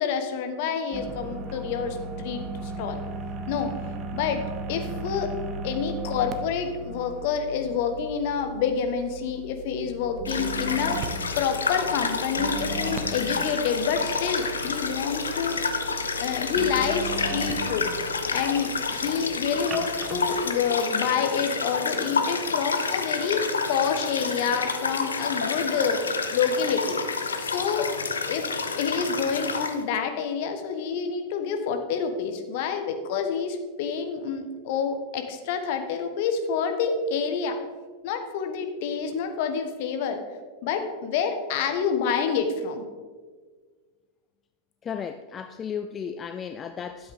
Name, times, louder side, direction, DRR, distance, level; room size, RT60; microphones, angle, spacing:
voice 1, 0.0-3.0 3.5-3.7 4.1-4.4 4.7-5.3 5.6-11.0 11.4-15.6 16.2-17.9 18.3-26.0 26.3-27.0 27.4-27.9 28.3-28.5 28.8-37.6 38.0-40.2 40.6-42.8, left 6 dB, 50° left, 6 dB, 1.1 m, -28 dB
sound 1, 0.9-20.4, right 2 dB, 30° right, 0.9 m, -37 dB
sound 2, 10.2-29.8, left 4 dB, 75° left, 0.8 m, -29 dB
voice 2, 44.9-47.1, left 7 dB, 25° left, 9 dB, 0.4 m, -34 dB
12.5 x 7.8 x 3.6 m, 1.5 s
figure-of-eight pair, 90°, 0 cm